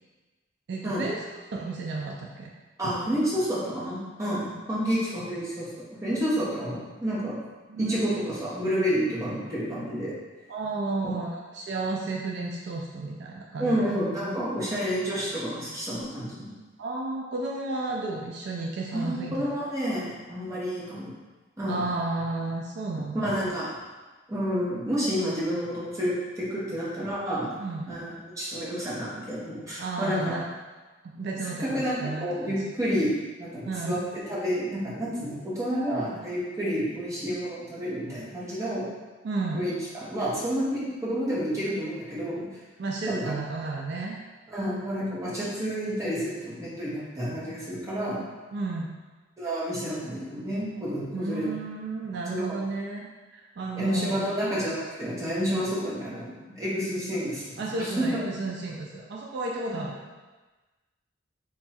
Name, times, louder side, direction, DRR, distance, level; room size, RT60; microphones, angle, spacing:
voice 1, 0.7-1.2 1.5-2.5 2.8-2.9 7.7-8.0 10.5-13.9 16.8-19.5 21.7-23.3 27.6-28.0 29.8-30.5 31.2-32.6 33.7-34.0 39.2-39.6 42.8-44.2 48.5-49.0 51.1-54.2 57.6-60.0, right 3 dB, 60° right, -2 dB, 0.4 m, -32 dB
voice 2, 2.8-5.7 6.0-7.4 7.8-10.1 11.0-11.1 13.6-16.5 18.9-21.1 21.6-21.9 23.1-23.7 24.3-27.5 27.9-30.4 31.6-34.0 34.3-38.9 39.5-42.5 43.1-43.3 44.5-48.2 49.4-51.5 52.3-52.6 53.8-58.2, equal, 15° right, -8 dB, 0.9 m, -29 dB
3.5 x 2.3 x 4.1 m, 1.2 s
head